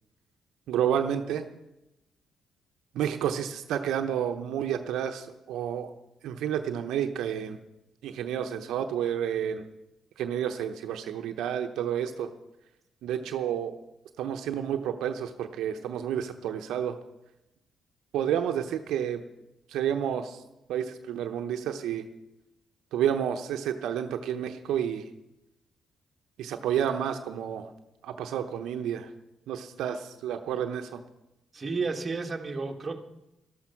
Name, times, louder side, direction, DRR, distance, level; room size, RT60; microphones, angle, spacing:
voice 1, 0.7-1.5 2.9-5.9 6.2-7.6 8.0-9.6 10.2-12.3 13.0-13.8 14.2-17.0 18.1-19.2 19.7-20.4 20.7-22.0 22.9-25.1 26.4-27.7 28.0-29.1 29.5-31.0, right 9 dB, 80° right, 6 dB, 0.9 m, -30 dB
voice 2, 31.5-33.0, right 4 dB, 30° right, 3 dB, 1.7 m, -32 dB
13.0 x 12.5 x 5.9 m, 0.91 s
cardioid pair, 90°, 0 cm